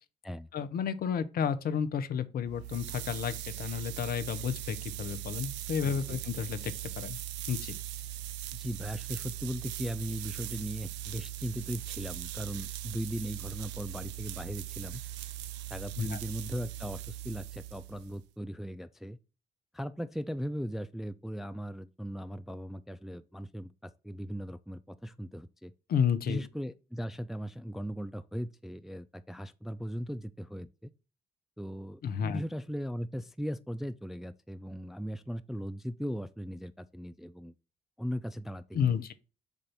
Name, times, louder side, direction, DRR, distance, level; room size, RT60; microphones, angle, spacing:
voice 1, 0.5-7.2 7.5-7.7 16.0-16.2 25.9-26.5 32.0-32.4 38.7-39.1, left 7 dB, 50° left, 0.6 m, -31 dB
sound 1, 2.5-18.2, right 13 dB, 65° right, 0.4 m, -40 dB
voice 2, 5.8-6.2 8.5-15.0 15.7-19.2 19.7-25.7 26.3-30.9 31.6-37.5 38.0-39.0, equal, ahead, 0.4 m, -38 dB
7.0 x 2.6 x 5.7 m
figure-of-eight pair, 40°, 20 cm